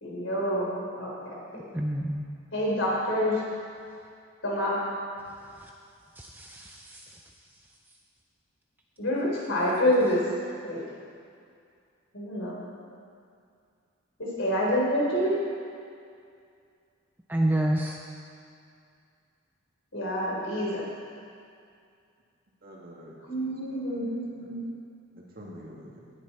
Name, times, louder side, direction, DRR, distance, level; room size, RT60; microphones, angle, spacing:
voice 1, 0.0-0.7 1.0-1.4 2.5-3.3 4.4-4.8 9.0-10.2 10.6-10.8 12.1-12.6 14.2-15.4 19.9-20.8 23.3-24.6, equal, 70° left, -5 dB, 3.9 m, -27 dB
voice 2, 1.7-2.3 6.2-7.0 17.3-18.0, right 1 dB, 10° right, 0 dB, 0.5 m, -28 dB
voice 3, 22.6-24.5 25.2-26.1, equal, 45° right, -3 dB, 2.2 m, -48 dB
17.5 x 9.9 x 4.2 m, 2.3 s
head